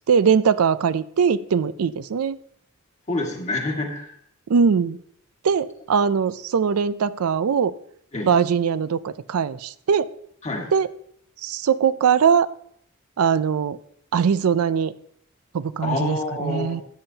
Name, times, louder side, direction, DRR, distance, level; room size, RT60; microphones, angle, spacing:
voice 1, 0.1-2.4 4.5-5.0 5.4-7.7 8.3-10.1 10.7-10.9 11.4-12.5 13.2-13.8 14.1-14.9 15.5-16.8, right 6 dB, 85° right, 15 dB, 0.4 m, -21 dB
voice 2, 3.1-4.2 8.1-8.3 10.4-10.7 15.8-16.8, left 2 dB, 35° left, 1 dB, 1.8 m, -27 dB
13.0 x 8.7 x 2.8 m, 0.66 s
head